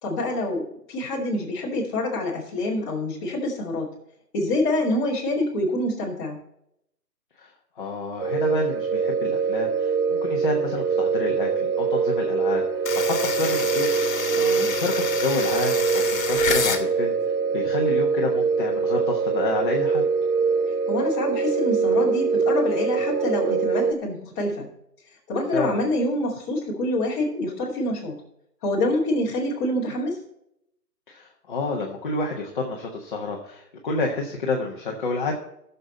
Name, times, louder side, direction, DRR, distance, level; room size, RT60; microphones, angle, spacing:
voice 1, 0.0-3.9 4.3-6.4 14.3-14.7 20.9-24.7 25.3-28.1 28.6-30.2, left 1 dB, 15° left, -6 dB, 2.6 m, -26 dB
voice 2, 7.8-13.9 14.2-17.2 17.5-20.0 25.5-25.8 31.1-35.3, left 3 dB, 30° left, -1 dB, 1.3 m, -29 dB
sound 1, 8.2-23.9, right 5 dB, 60° right, 0.6 m, -23 dB
sound 2, 12.8-16.8, left 5 dB, 55° left, 1.8 m, -28 dB
15.0 x 6.9 x 4.2 m, 0.77 s
hypercardioid pair, 165°, 49 cm